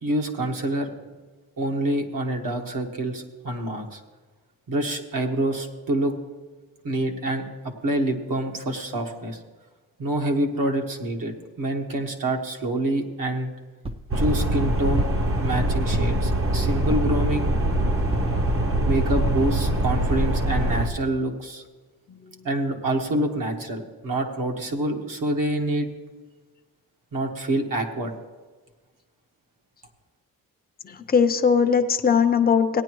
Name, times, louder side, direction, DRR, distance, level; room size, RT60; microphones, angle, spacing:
voice 1, 0.0-0.9 1.6-4.0 4.7-6.1 6.8-9.4 10.0-13.5 14.1-15.1 15.4-17.5 18.8-21.6 22.4-25.9 27.1-28.1, right 1 dB, 60° right, 2 dB, 1.5 m, -26 dB
sound 1, 13.8-14.1 15.0-15.3 15.9-16.3 16.9-17.2 18.1-18.5 19.2-19.4 20.0-20.1 20.4-20.5, right 2 dB, 15° right, 0.5 m, -32 dB
sound 2, 14.1-20.9, right 1 dB, 40° right, 1.0 m, -23 dB
voice 2, 22.1-22.5 30.8-32.8, left 6 dB, 25° left, 7 dB, 0.6 m, -21 dB
17.5 x 9.7 x 3.1 m, 1.3 s
cardioid pair, 100°, 36 cm